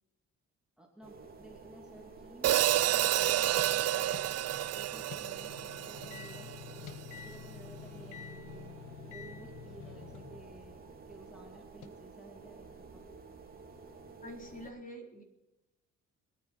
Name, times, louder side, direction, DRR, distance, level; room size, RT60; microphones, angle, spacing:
voice 1, 0.8-6.5 7.1-8.8 9.1-13.1, right 2 dB, 5° right, 1 dB, 2.9 m, -54 dB
sound 1, 1.0-14.7, right 4 dB, 30° right, 3.0 m, -51 dB
Hi-hat, 2.4-6.7, right 13 dB, 55° right, 0.5 m, -30 dB
sound 2, 2.6-10.8 11.8-11.9, left 8 dB, 80° left, 1.4 m, -49 dB
voice 2, 14.2-15.2, equal, 25° left, 2 dB, 3.9 m, -46 dB
23.5 x 9.8 x 4.4 m, 0.96 s
cardioid pair, 90°, 30 cm